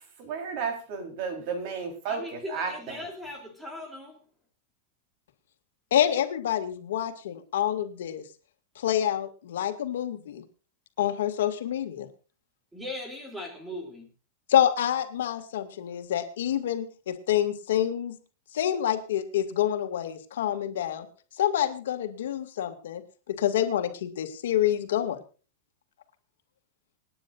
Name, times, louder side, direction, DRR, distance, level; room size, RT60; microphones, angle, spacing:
voice 1, 0.2-3.0, right 5 dB, 40° right, 5 dB, 4.0 m, -33 dB
voice 2, 2.1-4.2 12.7-14.1, left 1 dB, 5° right, 4 dB, 3.0 m, -39 dB
voice 3, 5.9-8.2 8.8-10.4 11.0-12.1 14.5-18.2 18.5-21.1 21.4-23.0 23.3-25.2, left 11 dB, 85° left, 7 dB, 2.2 m, -27 dB
27.5 x 9.9 x 2.6 m, 0.35 s
supercardioid pair, 175°, 0 cm